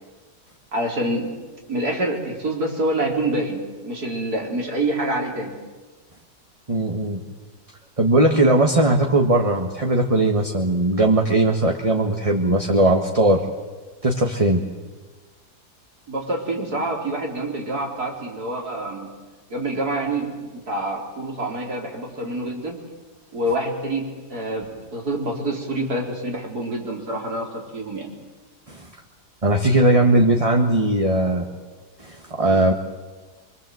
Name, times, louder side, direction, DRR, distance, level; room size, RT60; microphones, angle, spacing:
voice 1, 0.7-1.3 1.7-5.5 16.1-19.1 19.5-22.8 23.3-28.1, right 1 dB, 70° right, 0 dB, 4.6 m, -26 dB
voice 2, 6.7-7.2 8.0-13.4 14.0-14.6 28.7-28.9 29.4-31.5 32.0-32.7, right 1 dB, 20° right, 2 dB, 1.6 m, -19 dB
25.5 x 24.0 x 7.9 m, 1.3 s
omnidirectional pair, 1.7 m